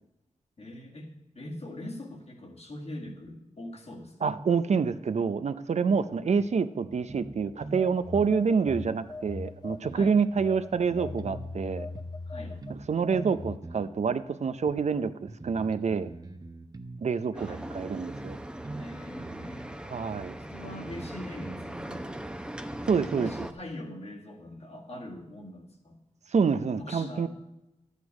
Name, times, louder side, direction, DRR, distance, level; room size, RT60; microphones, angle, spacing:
voice 1, 0.6-4.4 9.9-10.2 12.3-12.6 17.3-17.6 18.8-19.8 20.5-22.1 22.9-26.0 26.8-27.3, left 1 dB, 60° left, 0 dB, 1.9 m, -42 dB
voice 2, 4.2-11.9 12.7-16.1 17.0-18.4 19.8-20.3 22.9-23.3 26.3-27.3, right 5 dB, 65° right, 12 dB, 0.5 m, -27 dB
sound 1, 5.9-6.0 6.4-6.5 6.9-7.9 8.1-8.4 9.1-9.2 9.7-11.5 11.9-12.1 12.6-12.9 13.1-13.9 14.7-14.8 15.3-17.0 17.4-17.5 17.9-18.9 19.2-19.5 20.2-20.3 20.7-22.0, right 2 dB, 30° right, 0.9 m, -43 dB
Telephone, 7.8-10.1 10.4-13.6, left 3 dB, 35° left, 0.6 m, -39 dB
sound 2, 17.3-23.5, right 1 dB, 10° right, 0.7 m, -40 dB
11.5 x 8.2 x 4.8 m, 0.93 s
wide cardioid pair, 70°, 12 cm